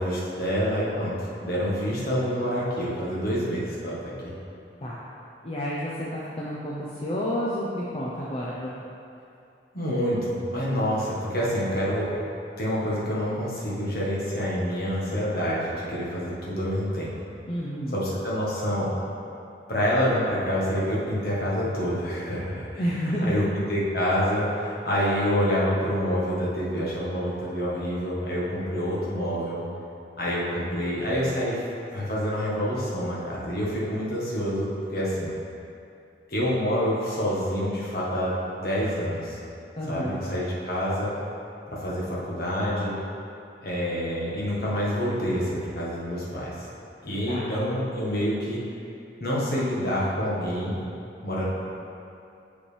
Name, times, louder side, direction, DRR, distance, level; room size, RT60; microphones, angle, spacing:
voice 1, 0.0-4.3 9.7-12.1 12.6-17.1 17.9-18.9 19.7-22.7 23.2-23.4 23.7-29.6 30.2-31.6 31.9-35.3 36.3-39.4 39.9-41.1 41.7-43.0 43.6-46.7 47.0-48.6 49.2-50.8 51.2-51.4, equal, 55° left, -6 dB, 1.3 m, -27 dB
voice 2, 5.4-8.7 17.5-18.0 22.8-23.5 39.8-40.2 47.3-47.5, equal, 30° left, -7 dB, 0.6 m, -30 dB
7.0 x 5.2 x 3.3 m, 2.6 s
head